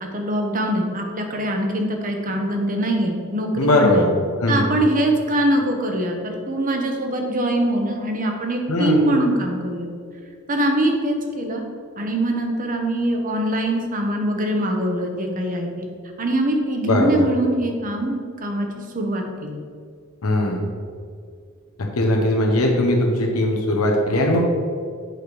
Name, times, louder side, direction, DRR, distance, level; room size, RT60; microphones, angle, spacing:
voice 1, 0.0-4.1 4.5-9.9 10.5-11.6 12.0-15.9 16.2-18.7 18.9-19.6, right 1 dB, 40° right, 3 dB, 1.0 m, -23 dB
voice 2, 3.5-4.1 4.4-4.7 8.7-9.1 16.8-17.2 20.2-20.7 21.8-24.4, left 1 dB, 85° left, 1 dB, 1.0 m, -19 dB
7.8 x 5.0 x 4.8 m, 2.2 s
head